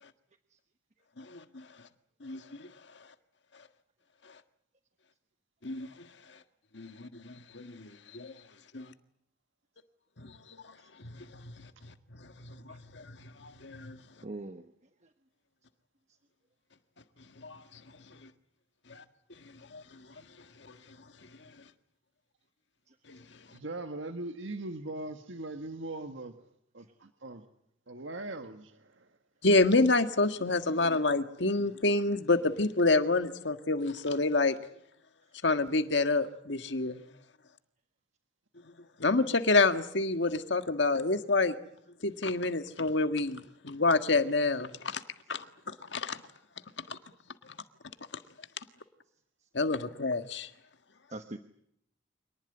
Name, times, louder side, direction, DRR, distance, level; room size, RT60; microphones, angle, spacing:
voice 1, 1.2-1.9 2.2-3.1 4.2-4.4 5.6-6.4 6.7-8.4 8.7-8.9 10.2-14.0 17.4-18.3 18.9-19.0 19.3-21.0 21.2-21.6 23.1-23.6 29.4-34.6 35.4-37.0 38.8-41.5 42.0-45.0 45.3-46.2 46.8-47.0 47.4-47.6 48.1-48.2 48.6-48.7 49.5-50.5, left 3 dB, 65° left, 9 dB, 1.7 m, -29 dB
voice 2, 14.2-14.7 15.0-15.1 16.1-16.2 20.1-20.3 22.9-23.0 26.8-26.9 49.4-49.5 51.1-51.4, right 2 dB, 40° right, 8 dB, 1.2 m, -44 dB
voice 3, 23.5-26.5 26.7-27.4 27.9-29.1, right 2 dB, 85° right, 7 dB, 1.6 m, -40 dB
26.5 x 19.5 x 9.8 m, 0.72 s
head